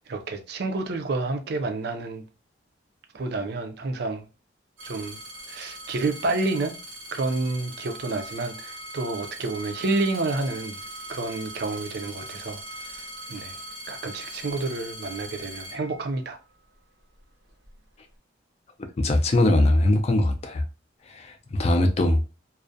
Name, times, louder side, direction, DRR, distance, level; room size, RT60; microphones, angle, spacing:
voice 1, 0.1-2.2 3.1-4.2 4.8-5.2 5.5-6.7 7.1-10.8 11.1-12.6 12.9-13.0 13.3-13.6 13.9-16.4, right 3 dB, 55° right, 0.4 m, -29 dB
sound 1, 4.8-16.5 17.2-17.8, right 1 dB, 90° right, 0.7 m, -40 dB
voice 2, 19.0-20.6 21.1-22.2, left 1 dB, 35° left, 0.3 m, -21 dB
2.4 x 2.0 x 2.5 m
head